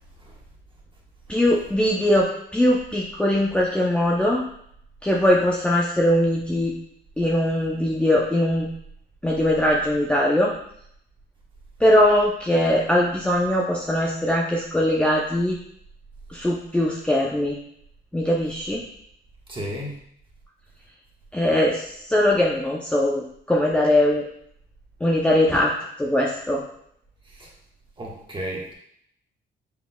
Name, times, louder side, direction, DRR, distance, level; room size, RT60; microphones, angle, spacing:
voice 1, 1.3-4.4 5.0-6.7 7.2-8.7 9.2-10.5 11.8-15.6 16.3-17.6 18.1-18.8 21.3-24.2 25.0-25.7 26.0-26.6, left 1 dB, 5° left, -3 dB, 0.6 m, -21 dB
voice 2, 19.5-20.0 27.2-27.5 28.0-28.7, equal, 25° right, -3 dB, 1.4 m, -33 dB
6.0 x 3.8 x 2.3 m, 0.70 s
cardioid pair, 90°, 20 cm